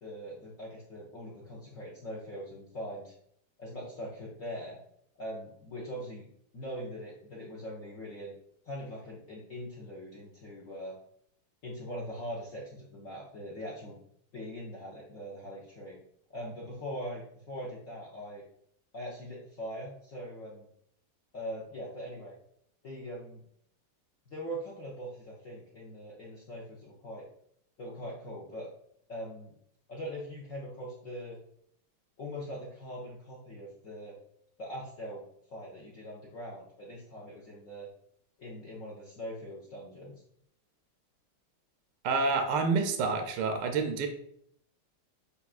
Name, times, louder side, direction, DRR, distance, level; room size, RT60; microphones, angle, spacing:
voice 1, 0.0-3.1 3.6-4.8 5.2-6.3 6.5-8.4 8.6-11.0 11.6-14.0 14.3-16.0 16.3-18.4 18.9-20.7 21.3-22.3 22.8-23.4 24.3-27.3 27.8-28.7 29.1-29.5 29.9-31.4 32.2-34.2 34.6-35.2 35.5-37.9 38.4-40.2, equal, 70° left, -3 dB, 0.7 m, -41 dB
voice 2, 42.0-44.1, right 4 dB, 75° right, 5 dB, 1.0 m, -28 dB
6.7 x 2.3 x 2.4 m, 0.69 s
omnidirectional pair, 2.3 m